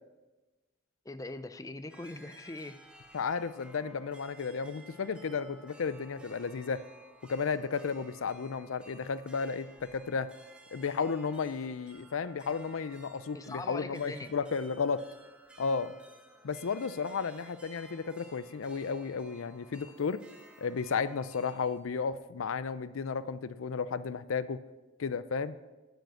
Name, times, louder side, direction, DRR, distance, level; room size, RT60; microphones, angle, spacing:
voice 1, 1.1-2.8 13.3-14.3, left 2 dB, 15° left, 12 dB, 0.4 m, -42 dB
sound 1, 1.9-21.8, right 1 dB, 5° right, 1.1 m, -56 dB
voice 2, 3.1-6.8 7.3-10.3 10.7-15.1 15.6-15.9 16.4-20.2 20.6-24.6 25.0-25.6, left 5 dB, 90° left, 15 dB, 0.5 m, -33 dB
9.0 x 8.0 x 7.8 m, 1.2 s
head